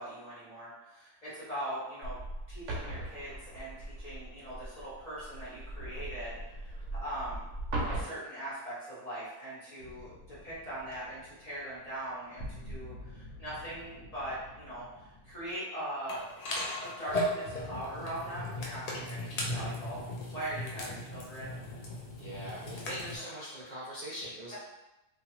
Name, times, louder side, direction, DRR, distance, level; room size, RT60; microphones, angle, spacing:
voice 1, 0.0-2.2 2.5-7.5 7.7-16.3 16.8-20.0 20.3-21.5 23.0-23.1, right 1 dB, 35° left, -9 dB, 0.8 m, -41 dB
sound 1, 2.0-8.0, right 1 dB, 75° right, 0.9 m, -39 dB
sound 2, 9.8-15.5, left 1 dB, 80° left, 0.9 m, -49 dB
sound 3, 16.1-23.2, left 1 dB, 60° left, 0.4 m, -37 dB
voice 2, 22.2-24.6, equal, 45° right, -8 dB, 0.6 m, -42 dB
2.4 x 2.4 x 2.9 m, 0.97 s
omnidirectional pair, 1.3 m